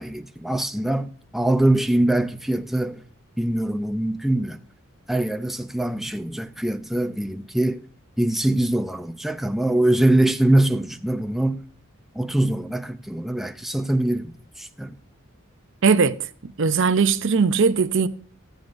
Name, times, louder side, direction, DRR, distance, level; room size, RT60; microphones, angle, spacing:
voice 1, 0.0-3.0 3.4-4.6 5.1-7.8 8.2-11.6 12.1-15.0, right 1 dB, ahead, 0.5 m, -23 dB
voice 2, 15.8-16.2 16.4-18.1, right 5 dB, 60° right, 0.6 m, -19 dB
13.5 x 9.2 x 2.6 m
head